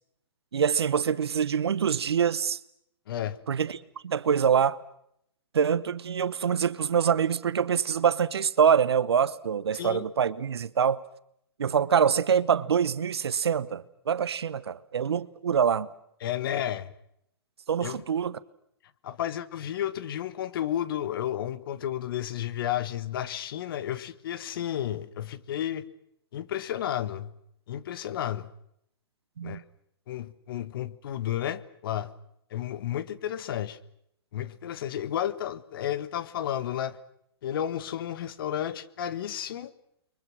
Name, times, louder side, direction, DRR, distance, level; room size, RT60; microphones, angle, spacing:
voice 1, 0.5-2.6 3.5-4.8 5.5-11.0 11.6-15.9 17.7-18.4 29.4-29.6, right 7 dB, 75° right, 1.1 m, -25 dB
voice 2, 3.1-3.4 9.7-10.0 16.2-16.9 17.8-18.0 19.0-25.9 26.3-27.3 27.7-28.5 29.4-29.6 30.1-32.1 32.5-33.8 34.3-37.0 37.4-39.7, left 11 dB, 60° left, 1.5 m, -32 dB
29.5 x 23.0 x 6.2 m
hypercardioid pair, 120°, 14 cm